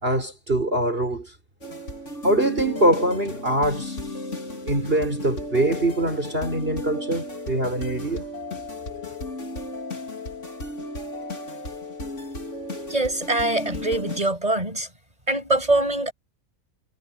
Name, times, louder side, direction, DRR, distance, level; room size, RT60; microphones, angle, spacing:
voice 1, 0.0-1.3 2.2-4.0 4.7-8.2, right 1 dB, 40° right, 6.0 m, -23 dB
sound 1, 1.6-14.2, left 2 dB, 55° left, 3.9 m, -34 dB
voice 2, 12.9-14.9 15.3-16.1, right 2 dB, 25° right, 6.0 m, -23 dB
omnidirectional pair, 1.5 m